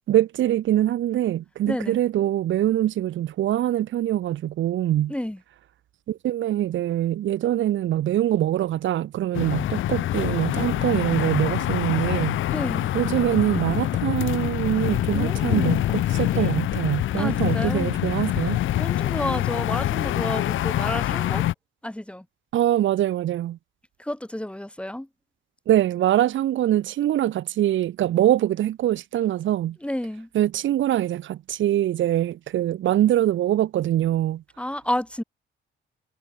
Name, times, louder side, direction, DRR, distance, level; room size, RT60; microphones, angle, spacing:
voice 1, 0.1-5.1 6.1-12.4 12.9-18.6 22.5-23.6 25.7-29.8 30.3-34.4, right 12 dB, 75° right, 2.0 m, -23 dB
voice 2, 1.7-2.0 5.1-5.4 12.5-12.9 15.1-15.7 16.3-16.5 17.2-17.9 18.3-21.4 21.8-22.3 24.0-25.1 29.8-30.3 34.6-35.2, left 1 dB, 5° left, 3.5 m, -31 dB
sound 1, 9.3-21.5, left 13 dB, 80° left, 2.0 m, -25 dB
cardioid pair, 90°, 20 cm